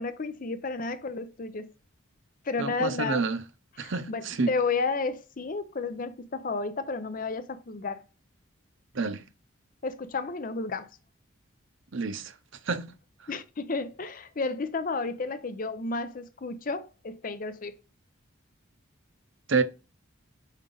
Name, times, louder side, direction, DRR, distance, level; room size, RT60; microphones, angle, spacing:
voice 1, 0.0-1.7 2.4-3.2 3.8-8.0 9.8-10.9 13.3-17.8, left 4 dB, 40° left, 0.5 m, -32 dB
voice 2, 2.6-3.4 3.8-4.5 8.9-9.2 11.9-12.3 12.6-12.9 19.5-19.6, right 4 dB, 65° right, 0.7 m, -28 dB
5.3 x 4.9 x 3.8 m
head